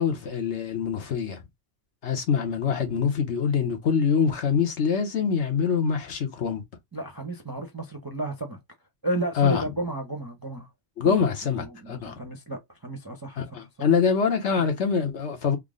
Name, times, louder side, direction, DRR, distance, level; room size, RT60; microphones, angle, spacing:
voice 1, 0.0-1.4 2.0-6.6 9.4-9.6 11.0-12.2 13.4-15.6, left 6 dB, 60° left, 1.1 m, -24 dB
voice 2, 6.9-8.6 9.0-10.7 11.0-11.2 11.4-13.9, right 1 dB, 25° right, 0.6 m, -33 dB
3.7 x 2.0 x 3.6 m
omnidirectional pair, 1.4 m